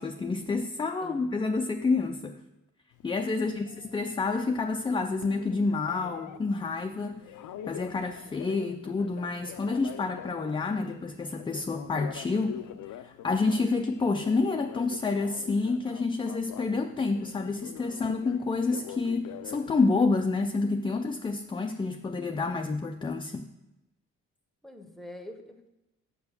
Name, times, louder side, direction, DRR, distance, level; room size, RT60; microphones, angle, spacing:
voice 1, 0.0-2.4 3.0-7.2 7.7-12.6 13.0-23.5, left 3 dB, 15° left, 5 dB, 0.3 m, -29 dB
voice 2, 1.0-1.4 3.3-3.7 24.6-25.7, left 1 dB, ahead, 6 dB, 0.8 m, -46 dB
Telephone, 2.9-20.1, left 11 dB, 75° left, 0.5 m, -45 dB
6.9 x 5.2 x 6.7 m, 0.96 s
cardioid pair, 120°, 31 cm